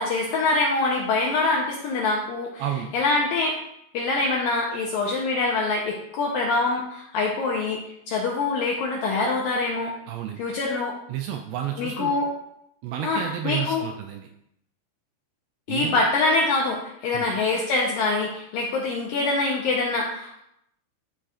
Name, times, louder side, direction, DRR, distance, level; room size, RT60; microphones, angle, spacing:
voice 1, 0.0-2.6 2.9-3.5 3.9-7.8 8.1-9.9 10.4-10.9 11.8-12.3 13.0-13.8 15.7-20.4, left 3 dB, 85° left, -2 dB, 2.0 m, -24 dB
voice 2, 2.6-2.9 10.1-10.4 11.1-12.2 12.8-14.3 15.7-16.0 17.1-17.3, right 10 dB, 85° right, 4 dB, 2.3 m, -31 dB
13.5 x 4.9 x 2.5 m, 0.79 s
omnidirectional pair, 5.2 m